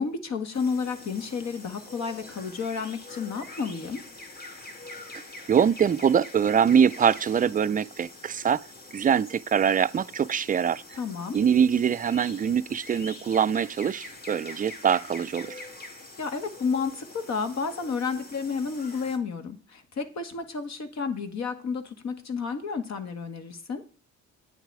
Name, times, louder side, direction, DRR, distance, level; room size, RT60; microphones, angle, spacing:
voice 1, 0.0-4.0 11.0-11.4 16.2-23.8, left 5 dB, 60° left, 1.8 m, -31 dB
sound 1, 0.5-19.2, left 2 dB, 30° left, 2.3 m, -45 dB
voice 2, 5.5-8.7 8.9-10.8 11.3-15.6, right 7 dB, 30° right, 0.4 m, -23 dB
9.1 x 9.0 x 4.8 m
cardioid pair, 90°, 30 cm